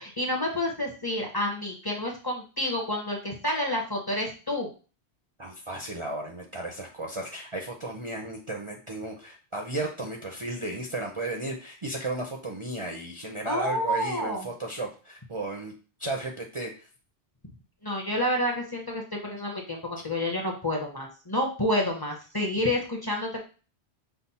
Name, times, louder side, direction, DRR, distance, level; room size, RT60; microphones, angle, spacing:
voice 1, 0.0-4.7 13.4-14.5 17.8-23.4, left 1 dB, 25° left, -1 dB, 0.8 m, -29 dB
voice 2, 5.4-15.7 16.0-16.9 20.0-20.1, right 2 dB, 35° right, 0 dB, 0.6 m, -34 dB
5.7 x 2.1 x 4.1 m, 0.35 s
omnidirectional pair, 1.1 m